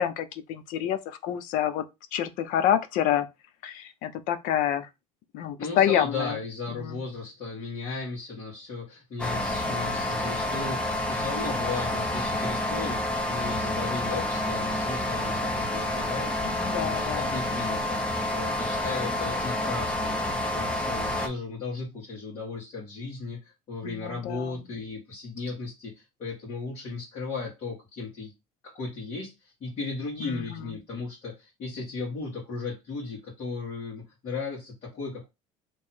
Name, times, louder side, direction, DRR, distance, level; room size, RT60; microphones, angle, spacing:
voice 1, 0.0-1.8 2.1-3.3 3.6-4.9 5.3-6.3 6.8-7.0 16.5-17.3 23.8-24.5 30.3-30.4, left 10 dB, 65° left, 0.6 m, -27 dB
voice 2, 5.6-20.2 20.5-28.3 28.6-35.3, left 4 dB, 45° left, 1.9 m, -36 dB
sound 1, 9.2-21.3, left 1 dB, 5° left, 0.7 m, -29 dB
3.2 x 2.8 x 4.4 m
cardioid pair, 125°, 15 cm